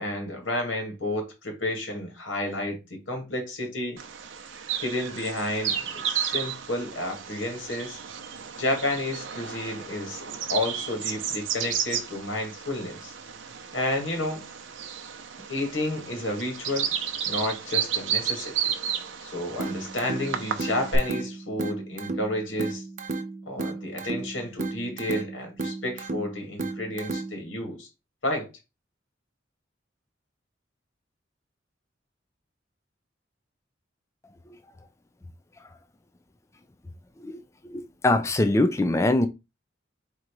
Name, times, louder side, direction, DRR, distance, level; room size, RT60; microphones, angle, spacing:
voice 1, 0.0-4.0 4.8-8.0 8.6-13.1 13.7-14.5 15.5-16.9 17.3-18.6 19.2-22.8 23.5-27.9 28.2-28.5, left 1 dB, 90° left, 1.9 m, -31 dB
Bird vocalization bird call bird song, 4.0-21.0, right 8 dB, 85° right, 0.7 m, -33 dB
sound 1, 19.6-27.6, right 3 dB, 40° right, 0.6 m, -34 dB
voice 2, 37.7-39.3, left 2 dB, 15° left, 0.4 m, -23 dB
3.8 x 2.9 x 4.6 m
head